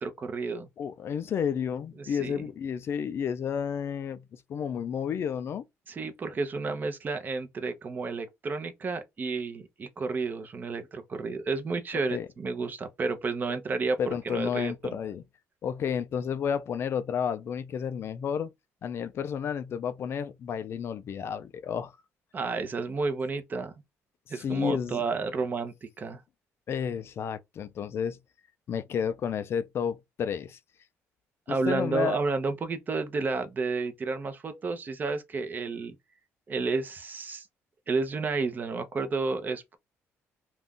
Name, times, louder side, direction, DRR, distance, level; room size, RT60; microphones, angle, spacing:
voice 1, 0.0-0.7 2.0-2.4 5.9-14.0 14.2-15.0 22.3-23.7 24.3-26.2 31.5-35.9 36.5-37.5 37.9-39.8, right 4 dB, 35° right, 0.7 m, -31 dB
voice 2, 0.8-5.6 12.1-12.3 14.0-15.2 15.6-18.5 18.8-22.0 24.3-25.0 26.7-28.2 28.7-30.6 31.5-32.2, left 7 dB, 50° left, 0.4 m, -31 dB
2.5 x 2.3 x 3.5 m
cardioid pair, 120°, 6 cm